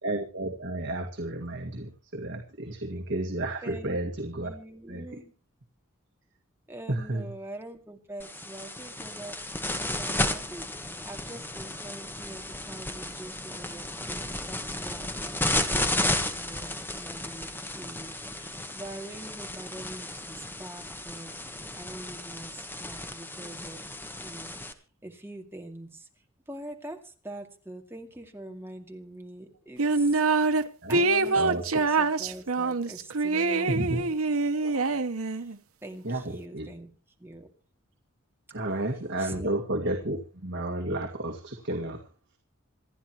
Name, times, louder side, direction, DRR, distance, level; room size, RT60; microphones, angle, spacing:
voice 1, 0.0-4.5 4.9-5.0 6.9-7.3 30.8-31.0 31.4-31.6 33.7-34.0 36.0-36.2 36.5-36.7 38.5-42.0, right 1 dB, 60° right, 3 dB, 1.9 m, -31 dB
voice 2, 3.6-4.0 4.4-5.3 6.7-9.4 9.9-23.9 24.2-26.1 26.5-34.2 34.6-35.0 35.3-35.5 35.8-36.9 37.2-37.5 39.2-39.6, right 1 dB, 10° right, 2 dB, 2.3 m, -44 dB
sound 1, 8.2-24.7, left 1 dB, 10° left, 1.4 m, -33 dB
sound 2, 29.8-30.6 30.9-35.6, right 3 dB, 85° right, 1.0 m, -25 dB
27.0 x 10.0 x 3.0 m, 0.37 s
head